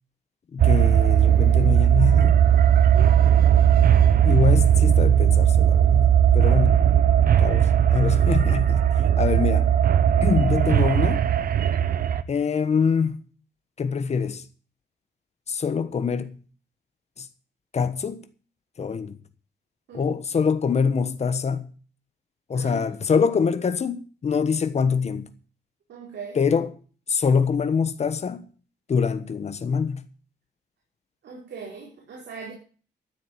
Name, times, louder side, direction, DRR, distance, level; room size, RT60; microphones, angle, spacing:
voice 1, 0.5-2.4 4.2-7.0 7.4-9.7 10.2-11.3 12.3-13.3 13.8-14.4 15.5-16.4 17.2-17.3 17.7-18.2 18.8-19.2 19.9-21.7 22.5-25.3 26.3-26.7 27.1-28.5 28.9-30.1, left 6 dB, 40° left, 1.2 m, -24 dB
sound 1, 0.6-12.2, right 9 dB, 55° right, 0.8 m, -18 dB
voice 2, 2.9-3.5 9.2-9.3 19.9-20.1 22.5-22.8 25.9-26.4 31.2-32.5, right 5 dB, 85° right, 4.3 m, -40 dB
13.0 x 7.6 x 7.5 m
wide cardioid pair, 165°, 18 cm